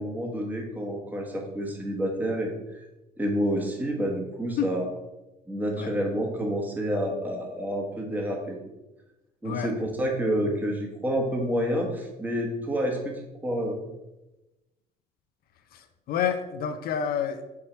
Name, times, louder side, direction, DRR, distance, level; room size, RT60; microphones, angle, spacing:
voice 1, 0.0-2.8 3.2-4.9 5.5-8.6 9.4-13.8, equal, 10° right, 1 dB, 1.1 m, -29 dB
voice 2, 15.7-17.4, left 8 dB, 65° left, 8 dB, 0.5 m, -29 dB
4.8 x 4.5 x 4.4 m, 0.99 s
cardioid pair, 110°, 17 cm